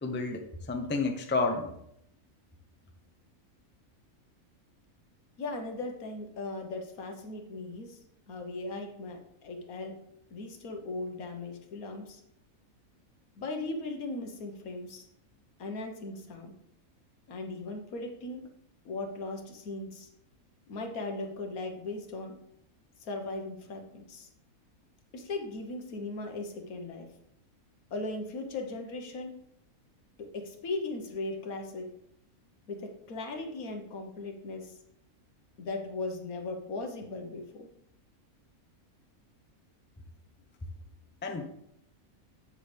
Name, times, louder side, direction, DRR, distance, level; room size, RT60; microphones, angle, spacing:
voice 1, 0.0-1.8 41.2-41.4, left 3 dB, 15° left, 4 dB, 0.5 m, -30 dB
voice 2, 5.4-8.0 8.3-9.9 10.3-12.2 13.4-15.1 15.6-16.5 17.3-18.4 18.8-20.1 20.7-22.4 23.0-24.3 25.1-27.1 27.9-29.3 30.2-31.9 32.7-34.8 35.6-37.7, left 2 dB, 75° left, 4 dB, 1.6 m, -38 dB
7.6 x 7.3 x 3.4 m, 0.75 s
omnidirectional pair, 1.5 m